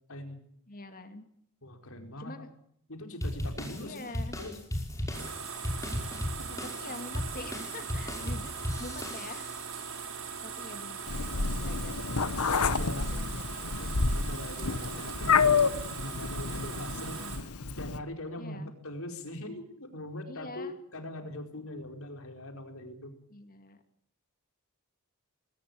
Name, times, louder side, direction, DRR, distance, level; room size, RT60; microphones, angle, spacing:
voice 1, 0.7-1.3 2.2-2.5 3.8-4.4 5.2-5.3 6.6-9.5 10.4-12.4 12.7-13.8 17.0-17.5 18.3-18.7 20.3-20.7 23.3-23.8, left 2 dB, 40° left, 8 dB, 2.4 m, -45 dB
voice 2, 1.6-2.5 2.9-4.0 4.3-4.6 6.4-6.6 12.8-13.1 13.8-17.3 17.8-23.1, left 1 dB, 65° left, 5 dB, 4.6 m, -42 dB
sound 1, 3.2-9.7, left 1 dB, 15° left, 5.6 m, -36 dB
sound 2, 5.1-17.4, right 6 dB, 65° right, 5.9 m, -40 dB
Meow, 11.1-18.0, left 5 dB, 85° left, 1.3 m, -29 dB
21.5 x 19.0 x 7.1 m, 0.68 s
head